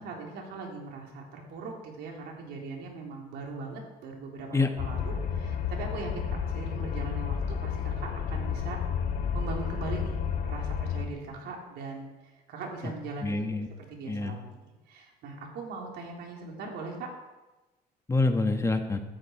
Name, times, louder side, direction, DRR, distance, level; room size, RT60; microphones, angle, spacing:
voice 1, 0.0-8.8 9.3-13.4 13.9-14.6 14.9-17.1, right 3 dB, 80° right, 0 dB, 3.8 m, -40 dB
sound 1, 4.8-11.0, left 7 dB, 75° left, 2.0 m, -31 dB
voice 2, 13.2-13.7 14.1-14.4 18.1-19.0, left 3 dB, 15° left, 5 dB, 1.4 m, -26 dB
16.0 x 13.0 x 4.7 m, 1.1 s
cardioid pair, 110°, 17 cm